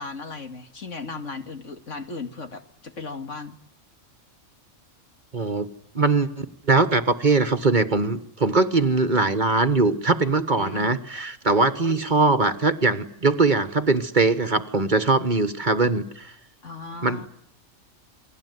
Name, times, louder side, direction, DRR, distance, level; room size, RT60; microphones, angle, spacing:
voice 1, 0.0-3.6 10.6-11.2 16.6-17.3, left 4 dB, 70° left, 7 dB, 2.6 m, -36 dB
voice 2, 5.3-5.7 5.9-16.3 17.0-17.3, right 3 dB, 40° right, 12 dB, 1.5 m, -21 dB
29.0 x 20.5 x 9.5 m, 0.74 s
omnidirectional pair, 1.3 m